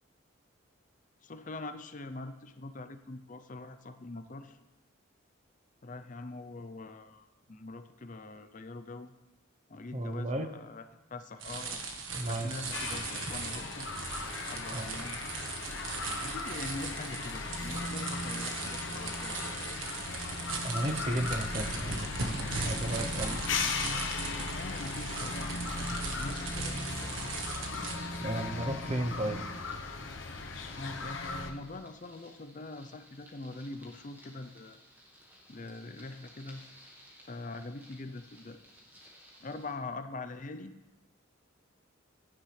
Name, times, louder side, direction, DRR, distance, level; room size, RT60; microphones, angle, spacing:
voice 1, 1.2-4.6 5.8-9.2 9.7-10.8 11.1-11.8 12.3-13.9 14.5-15.2 16.2-19.5 24.4-27.1 28.9-29.1 30.7-34.8 35.5-36.6 37.3-38.6 39.4-40.7, left 2 dB, 40° left, 10 dB, 0.6 m, -43 dB
voice 2, 9.9-10.5 12.2-12.7 14.7-14.9 20.6-22.1 22.6-23.4 28.2-29.5, right 1 dB, 30° right, 6 dB, 0.8 m, -34 dB
sound 1, 11.4-28.0, right 4 dB, 70° right, 1.5 m, -39 dB
sound 2, 12.7-31.5, left 3 dB, 65° left, 1.0 m, -37 dB
sound 3, 26.3-39.7, equal, 10° right, 1.6 m, -56 dB
16.0 x 11.0 x 3.3 m, 1.1 s
head